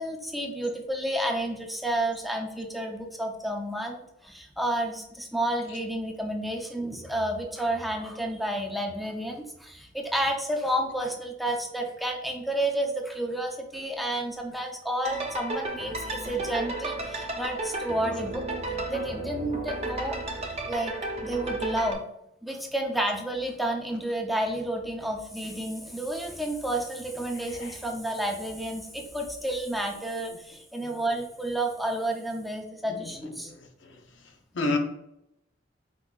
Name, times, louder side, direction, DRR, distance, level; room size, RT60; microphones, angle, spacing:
voice 1, 0.0-20.2 20.7-20.9 21.2-22.0 22.4-33.5, right 1 dB, ahead, 0.5 m, -31 dB
sound 1, 15.0-21.9, right 2 dB, 35° right, 0.7 m, -33 dB
voice 2, 27.5-27.7 30.8-31.0 32.9-33.1 33.4-33.5 34.5-34.8, left 2 dB, 90° left, 0.7 m, -29 dB
4.6 x 4.0 x 2.3 m
head